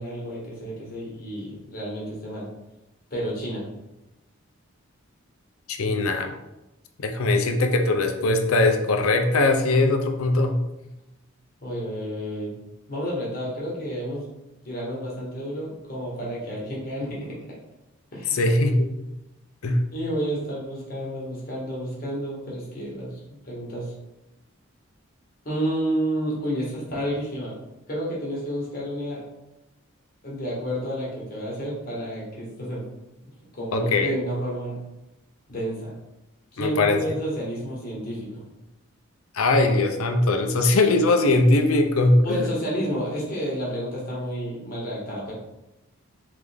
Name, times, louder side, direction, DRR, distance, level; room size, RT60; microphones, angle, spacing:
voice 1, 0.0-2.5 3.1-3.6 11.6-12.5 12.9-14.2 14.6-17.3 18.1-18.4 19.9-23.9 25.4-27.5 27.9-29.2 30.2-32.8 33.5-34.8 35.5-35.9 36.5-38.5 42.2-45.3, equal, 40° left, -5 dB, 1.5 m, -30 dB
voice 2, 5.7-6.3 7.0-10.6 18.3-18.9 19.6-19.8 33.7-34.1 36.6-37.0 39.3-42.5, left 2 dB, 80° left, 5 dB, 0.6 m, -20 dB
3.6 x 3.4 x 3.4 m, 0.94 s
head